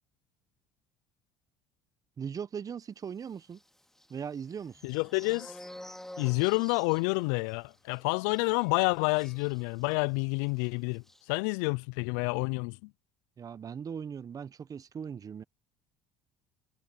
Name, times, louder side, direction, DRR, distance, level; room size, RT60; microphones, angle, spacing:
voice 1, 2.2-3.6 4.1-4.8 13.4-15.4, right 7 dB, 40° right, 1.2 m, -39 dB
sound 1, 3.5-10.2 10.5-10.7 10.9-11.2, left 1 dB, 5° left, 2.5 m, -50 dB
voice 2, 4.8-5.6 6.2-11.0 11.3-12.9, left 31 dB, 80° left, 0.4 m, -29 dB
hypercardioid pair, 70°, 10 cm